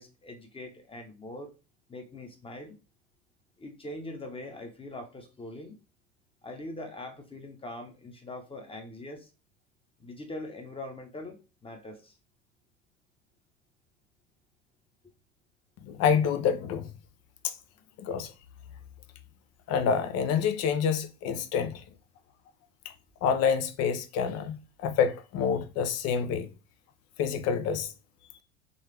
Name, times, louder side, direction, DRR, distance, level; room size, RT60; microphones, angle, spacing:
voice 1, 0.0-1.5 1.9-2.8 3.6-5.8 6.4-9.3 10.0-12.1 17.8-17.9, left 1 dB, 15° left, 1.0 m, -42 dB
voice 2, 15.9-16.9 17.4-17.5 18.0-18.3 19.7-21.8 22.8-22.9 23.2-26.5 27.2-27.9, left 7 dB, 45° left, 0.7 m, -27 dB
3.9 x 3.2 x 3.3 m
hypercardioid pair, 75°, 36 cm